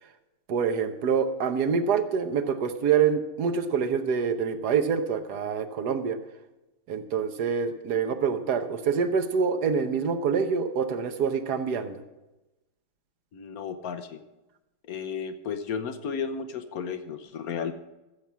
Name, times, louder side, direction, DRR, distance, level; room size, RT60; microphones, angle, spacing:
voice 1, 0.5-6.2 6.9-12.0, right 6 dB, 60° right, 9 dB, 1.3 m, -26 dB
voice 2, 13.3-14.2 14.9-17.7, left 6 dB, 60° left, 10 dB, 1.0 m, -33 dB
15.0 x 7.2 x 6.1 m, 1.0 s
omnidirectional pair, 2.3 m